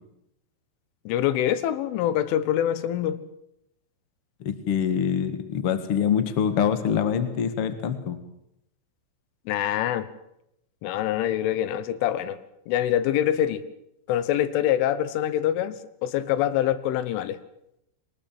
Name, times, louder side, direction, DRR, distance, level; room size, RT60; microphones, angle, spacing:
voice 1, 1.1-3.2 9.5-10.1 10.8-12.4 12.7-13.6 14.1-15.8 16.0-17.4, left 11 dB, 90° left, 15 dB, 3.6 m, -25 dB
voice 2, 4.4-8.2, left 8 dB, 70° left, 11 dB, 1.3 m, -25 dB
22.5 x 19.5 x 7.6 m, 0.80 s
omnidirectional pair, 5.4 m